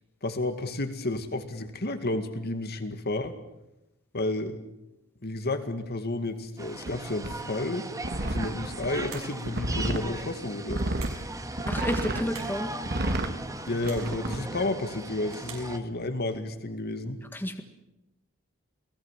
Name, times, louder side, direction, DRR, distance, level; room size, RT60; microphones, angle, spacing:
voice 1, 0.2-3.4 4.1-4.6 5.2-7.9 8.2-10.8 13.7-17.2, left 2 dB, 50° left, 8 dB, 2.1 m, -31 dB
sound 1, 6.6-15.8, right 2 dB, 15° right, 1.6 m, -38 dB
sound 2, 6.9-7.0 7.2-7.3 8.0-10.1 10.7-11.1 11.5-12.2 12.8-13.3 13.8-14.4, right 1 dB, 50° right, 2.0 m, -31 dB
sound 3, 8.9-9.4 10.7-11.3 12.1-12.6 13.5-14.1 15.0-15.7, right 7 dB, 90° right, 6.0 m, -46 dB
voice 2, 11.7-12.7 17.3-17.6, equal, 10° left, 6 dB, 1.7 m, -30 dB
29.0 x 19.0 x 7.5 m, 0.95 s
head